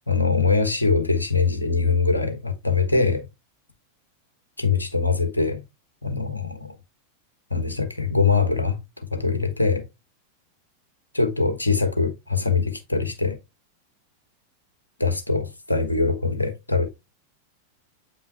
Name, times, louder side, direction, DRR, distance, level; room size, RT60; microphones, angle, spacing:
voice 1, 0.1-3.2 4.6-5.6 6.0-6.8 7.5-9.8 11.1-13.4 15.0-16.9, left 4 dB, 80° left, 1.3 m, -23 dB
8.2 x 5.5 x 2.8 m
figure-of-eight pair, 90°, 0 cm